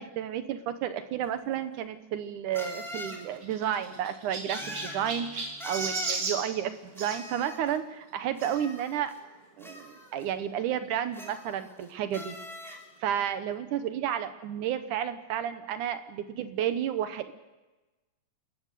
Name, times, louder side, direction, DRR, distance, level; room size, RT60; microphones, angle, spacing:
voice 1, 0.0-9.1 9.6-12.3 12.6-17.3, right 10 dB, 75° right, 10 dB, 2.4 m, -32 dB
sound 1, 1.2-1.3 2.5-3.2 4.5-5.0 5.6-6.2 7.0-7.8 8.4-9.2 9.6-10.2 11.1-11.8 12.1-12.8, equal, ahead, 2.5 m, -41 dB
Chirp tweet, 2.9-7.2 8.4-8.6 9.3-9.4 9.6-9.7 11.0-11.1, right 3 dB, 50° right, 3.1 m, -36 dB
sound 2, 4.6-6.9, left 2 dB, 55° left, 5.8 m, -55 dB
29.0 x 14.0 x 6.8 m, 1.1 s
omnidirectional pair, 3.7 m